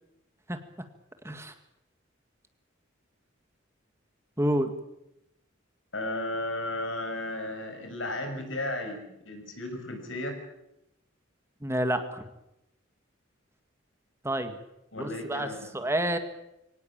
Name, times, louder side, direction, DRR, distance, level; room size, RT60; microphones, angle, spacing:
voice 1, 4.4-4.7 11.6-12.2 14.2-14.6 15.0-15.5 15.7-16.2, right 1 dB, 15° right, 8 dB, 1.8 m, -28 dB
voice 2, 5.9-10.4 14.9-15.7, left 1 dB, 70° left, 5 dB, 6.3 m, -34 dB
24.0 x 18.0 x 8.8 m, 0.86 s
head